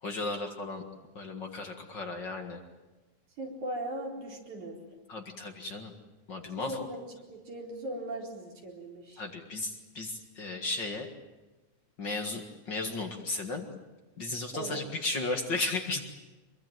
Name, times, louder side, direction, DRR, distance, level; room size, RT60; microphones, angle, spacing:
voice 1, 0.0-0.8 1.1-2.6 5.1-5.9 6.3-6.9 9.2-11.1 12.0-13.7 14.2-16.0, left 2 dB, 40° left, 4 dB, 2.2 m, -35 dB
voice 2, 3.4-4.8 6.6-9.2 14.5-14.8, right 1 dB, 80° right, 0 dB, 5.8 m, -39 dB
25.5 x 22.5 x 9.1 m, 1.2 s
omnidirectional pair, 3.3 m